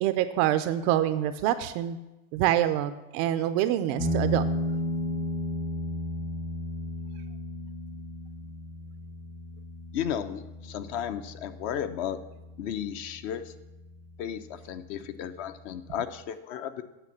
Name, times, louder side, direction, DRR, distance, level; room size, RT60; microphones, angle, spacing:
voice 1, 0.0-2.0 2.3-4.4, right 12 dB, 35° right, 11 dB, 0.4 m, -26 dB
sound 1, 4.0-13.0, left 1 dB, 80° left, 2.0 m, -33 dB
voice 2, 9.9-12.2 12.6-13.4 14.2-16.8, left 9 dB, 50° left, 10 dB, 0.8 m, -34 dB
9.0 x 6.2 x 7.1 m, 1.0 s
hypercardioid pair, 120°, 44 cm